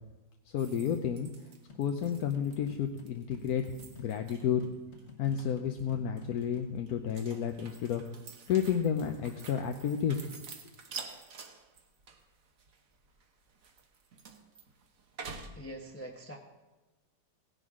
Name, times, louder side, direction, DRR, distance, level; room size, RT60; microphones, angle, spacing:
voice 1, 0.5-1.3 1.8-3.6 4.0-4.6 5.2-8.0 8.5-10.2, left 8 dB, 65° left, 4 dB, 1.2 m, -31 dB
sound 1, 0.6-4.7 5.0-5.8 6.2-15.5, right 5 dB, 55° right, 1.4 m, -49 dB
sound 2, 1.7-6.8, left 4 dB, 40° left, 1.5 m, -52 dB
voice 2, 15.5-16.4, right 1 dB, 10° left, 0 dB, 0.8 m, -43 dB
17.0 x 10.5 x 3.7 m, 1.2 s
omnidirectional pair, 1.9 m